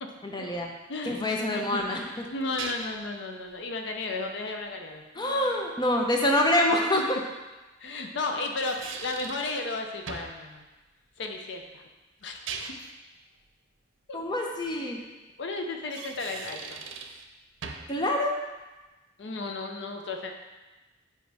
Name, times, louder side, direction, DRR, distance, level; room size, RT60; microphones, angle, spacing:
voice 1, 0.2-0.7 1.0-2.1 5.1-7.1 14.1-15.0 17.9-18.4, left 1 dB, 25° left, 1 dB, 0.7 m, -26 dB
voice 2, 0.9-5.0 6.9-7.1 7.8-10.6 11.2-11.9 12.2-12.4 14.1-14.2 15.4-16.8 19.2-20.3, left 3 dB, 65° left, 3 dB, 0.6 m, -34 dB
sound 1, 1.8-3.1 6.3-6.4 8.3-9.5 10.1-10.4 12.2-13.0 15.7-17.3 17.6-18.0, right 5 dB, 80° right, 0.6 m, -40 dB
7.9 x 5.0 x 3.4 m, 1.1 s
head